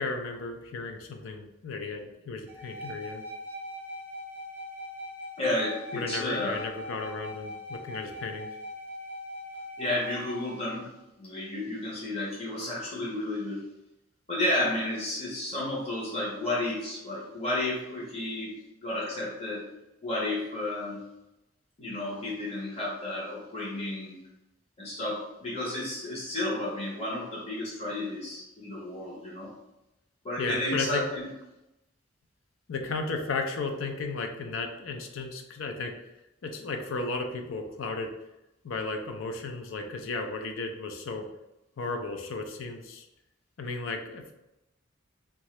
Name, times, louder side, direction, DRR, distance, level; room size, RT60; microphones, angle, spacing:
voice 1, 0.0-3.2 5.9-8.5 30.4-31.0 32.7-36.0 36.4-38.1 38.6-41.3 41.8-43.1 43.6-44.3, left 3 dB, 85° left, 4 dB, 0.5 m, -34 dB
sound 1, 2.5-10.7, left 1 dB, 10° right, 0.5 m, -41 dB
voice 2, 5.4-6.6 9.8-10.9 11.2-13.6 14.3-18.5 18.8-19.6 20.0-21.0 21.8-24.2 24.8-29.5 30.2-31.3, left 1 dB, 30° left, -6 dB, 0.8 m, -32 dB
2.8 x 2.3 x 3.0 m, 0.93 s
head